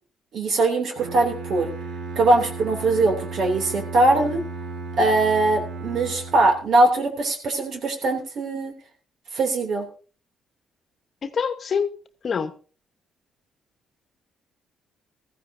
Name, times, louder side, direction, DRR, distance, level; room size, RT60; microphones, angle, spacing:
voice 1, 0.3-1.7 2.1-4.4 5.0-8.7 9.3-9.9, right 2 dB, 65° right, 2.9 m, -21 dB
Bowed string instrument, 1.0-6.8, right 4 dB, 85° right, 1.9 m, -35 dB
voice 2, 11.2-12.0 12.2-12.5, left 6 dB, 50° left, 1.1 m, -25 dB
15.5 x 14.5 x 2.7 m
cardioid pair, 90°, 0 cm